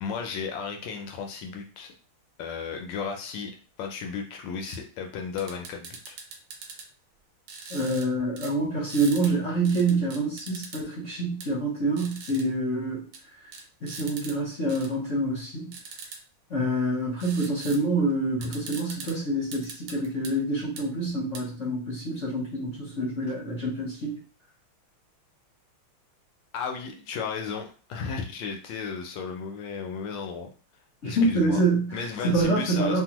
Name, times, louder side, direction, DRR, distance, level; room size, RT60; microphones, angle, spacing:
voice 1, 0.0-1.9 2.4-3.5 3.8-6.2 26.5-30.5 31.0-31.6 31.9-33.0, left 6 dB, 75° left, 3 dB, 1.1 m, -34 dB
sound 1, 4.7-4.8 5.4-6.9 7.5-8.1 8.4-8.5 8.9-9.3 9.7-10.8 11.4-11.5 12.0-12.4 13.1-13.2 13.5-14.4 14.7-14.9 15.7-16.2 17.2-17.8 18.1-18.2 18.4-19.2 19.5-20.3 20.8-20.9 21.4-21.5, right 5 dB, 75° right, 1.4 m, -41 dB
voice 2, 7.7-13.1 13.8-15.8 16.5-24.2 31.0-33.0, right 2 dB, 55° left, -4 dB, 0.8 m, -26 dB
3.4 x 2.1 x 2.9 m, 0.38 s
omnidirectional pair, 2.4 m